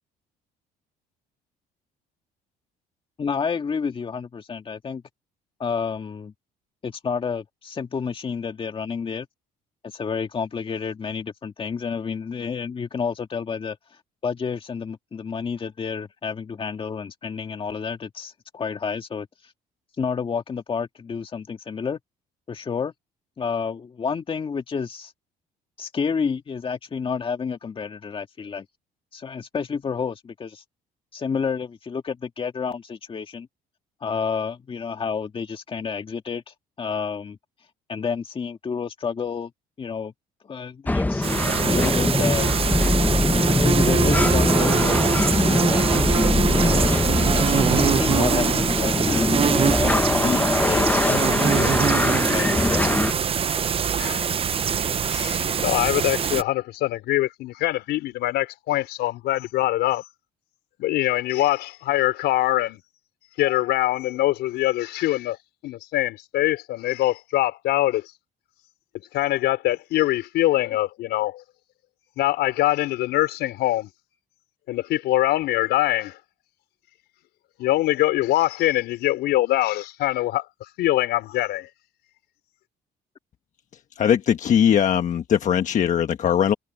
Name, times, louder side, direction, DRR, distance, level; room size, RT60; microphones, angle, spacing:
voice 1, 3.2-5.0 5.6-6.3 6.8-9.3 9.8-13.8 14.2-19.3 20.0-22.0 22.5-22.9 23.4-25.1 25.8-28.7 29.1-30.6 31.1-33.5 34.0-37.4 37.9-39.5 39.8-40.1 40.4-41.3 41.6-42.5 43.5-46.2 46.6-47.0 47.3-49.3 49.8-51.7 52.3-52.9, left 6 dB, 30° left, 1.9 m, -30 dB
sound 1, 40.9-53.1, left 2 dB, 10° left, 1.1 m, -22 dB
sound 2, 41.2-56.4, right 7 dB, 35° right, 0.7 m, -23 dB
voice 2, 55.1-60.0 60.8-62.8 63.4-65.4 65.6-68.0 69.1-71.4 72.2-73.9 74.7-76.2 77.6-80.5 80.8-81.7, left 15 dB, 80° left, 5.2 m, -23 dB
voice 3, 84.0-86.5, left 9 dB, 50° left, 1.2 m, -20 dB
cardioid pair, 110°, 17 cm